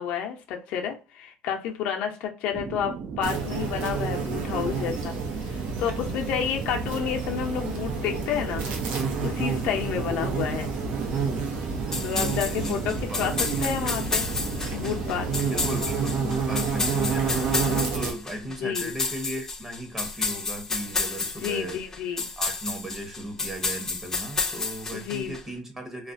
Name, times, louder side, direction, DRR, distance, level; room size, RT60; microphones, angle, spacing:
voice 1, 0.0-5.2 5.8-8.7 9.2-10.7 12.0-14.3 14.7-15.5 18.6-19.0 21.2-22.2 24.9-25.3, left 8 dB, 70° left, 3 dB, 0.6 m, -30 dB
sound 1, 2.5-15.8, right 6 dB, 45° right, 0.3 m, -37 dB
sound 2, 3.2-18.1, right 5 dB, 65° right, 0.7 m, -30 dB
sound 3, 11.9-25.4, left 3 dB, 20° left, 0.5 m, -31 dB
voice 2, 12.1-13.3 15.5-21.8 22.4-26.1, right 1 dB, 15° right, 3 dB, 0.9 m, -36 dB
2.3 x 2.1 x 2.5 m, 0.33 s
supercardioid pair, 105°, 2 cm